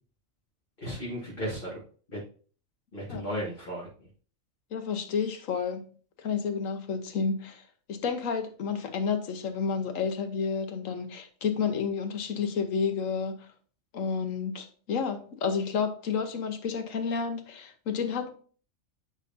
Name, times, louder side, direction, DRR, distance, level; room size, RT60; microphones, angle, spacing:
voice 1, 0.8-1.8 2.1-2.2 2.9-3.9, equal, 40° left, 1.9 m, -34 dB
voice 2, 4.7-5.8 6.2-13.5 13.9-18.3, left 6 dB, 75° left, 1.3 m, -30 dB
8.9 x 5.1 x 2.6 m
omnidirectional pair, 1.4 m